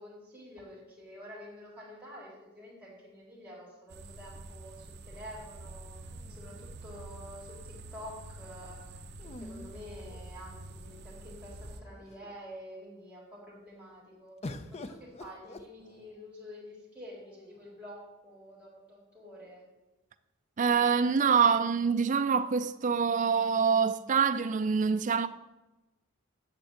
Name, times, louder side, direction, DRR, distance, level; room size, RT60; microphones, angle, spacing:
voice 1, 0.0-19.7, equal, 5° right, 3.9 m, -48 dB
sound 1, 3.9-11.8, right 2 dB, 50° right, 0.9 m, -47 dB
sound 2, 6.1-7.2 9.2-10.7 11.5-11.6 11.9-12.5 14.4-16.3 17.2-17.9, left 2 dB, 30° left, 0.6 m, -47 dB
voice 2, 20.6-25.3, right 6 dB, 35° right, 0.4 m, -25 dB
8.9 x 6.8 x 7.7 m
head